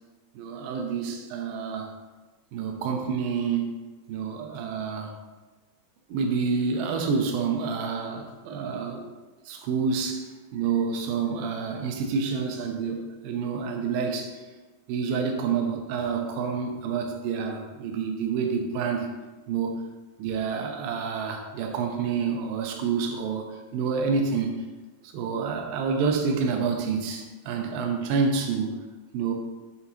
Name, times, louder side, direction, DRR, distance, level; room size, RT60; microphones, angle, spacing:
voice 1, 0.4-1.9 2.5-3.8 4.1-5.1 6.1-9.1 9.5-10.3 10.5-14.5 14.9-19.1 19.5-19.8 20.2-24.6 25.1-28.7 29.1-29.3, right 5 dB, 80° right, 3 dB, 2.2 m, -28 dB
9.5 x 3.8 x 3.0 m, 1.2 s
omnidirectional pair, 4.9 m